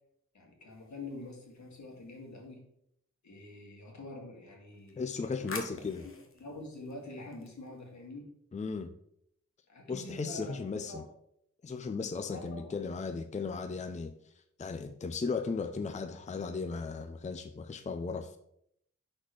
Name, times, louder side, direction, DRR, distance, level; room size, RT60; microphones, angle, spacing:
voice 1, 0.3-2.6 3.2-5.6 6.0-8.3 9.7-11.0 12.3-12.8, left 2 dB, 75° left, -1 dB, 2.0 m, -46 dB
sound 1, 0.7-2.5 4.7-8.0, left 3 dB, 45° left, 1.2 m, -48 dB
voice 2, 5.0-6.1 8.5-8.9 9.9-11.0 11.6-14.1 14.6-18.4, left 4 dB, 25° left, 9 dB, 0.5 m, -36 dB
6.1 x 4.3 x 4.7 m, 0.73 s
cardioid pair, 65°, 29 cm